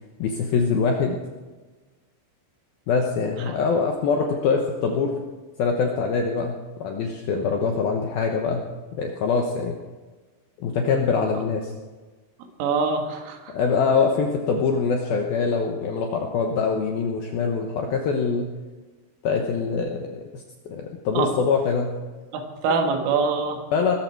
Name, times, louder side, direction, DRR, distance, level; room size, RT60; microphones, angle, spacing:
voice 1, 0.2-1.2 2.9-5.1 5.6-8.6 8.9-9.8 10.6-11.7 13.5-18.5 19.2-20.4 20.7-21.9 23.7-23.9, left 5 dB, 75° left, 2 dB, 2.2 m, -24 dB
voice 2, 12.6-13.5 21.1-21.3 22.3-23.6, right 4 dB, 80° right, 3 dB, 4.5 m, -24 dB
21.5 x 13.5 x 4.6 m, 1.3 s
omnidirectional pair, 5.7 m